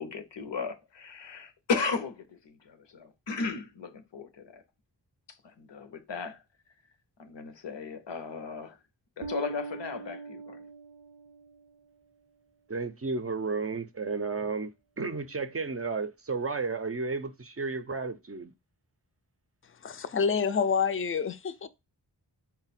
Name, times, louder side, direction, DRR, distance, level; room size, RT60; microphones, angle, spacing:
voice 1, 0.0-4.6 5.4-6.4 7.2-8.8 9.2-10.6, left 4 dB, 85° left, 0.7 m, -35 dB
Bass guitar, 9.2-11.6, right 4 dB, 85° right, 0.6 m, -41 dB
voice 2, 12.7-14.7 15.0-18.5, right 4 dB, 35° right, 0.4 m, -32 dB
voice 3, 19.8-21.7, left 6 dB, 30° left, 0.4 m, -28 dB
3.9 x 2.1 x 4.1 m
wide cardioid pair, 60°, 42 cm